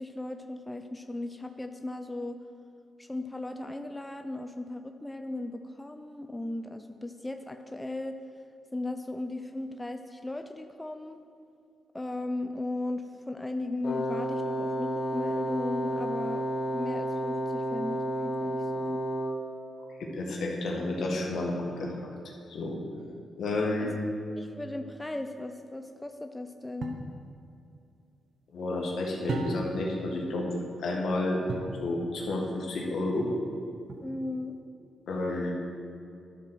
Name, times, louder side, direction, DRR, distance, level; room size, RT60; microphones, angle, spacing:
voice 1, 0.0-2.4 3.0-8.2 8.7-11.2 11.9-19.1 23.8-24.0 24.4-27.0 34.0-34.6, left 2 dB, 15° left, 6 dB, 0.5 m, -37 dB
Wind instrument woodwind instrument, 13.8-19.5, right 1 dB, 50° left, 1.0 m, -31 dB
voice 2, 20.0-22.0 22.5-22.8 23.4-23.9 28.5-30.5 30.8-31.4 31.8-33.3 35.1-35.5, left 2 dB, 75° left, 0 dB, 1.5 m, -31 dB
sound 1, 26.8-27.1 29.3-29.9 31.5-31.8 33.9-34.4, right 3 dB, 70° right, 1.0 m, -35 dB
11.5 x 4.5 x 6.2 m, 2.5 s
cardioid pair, 65°, 0 cm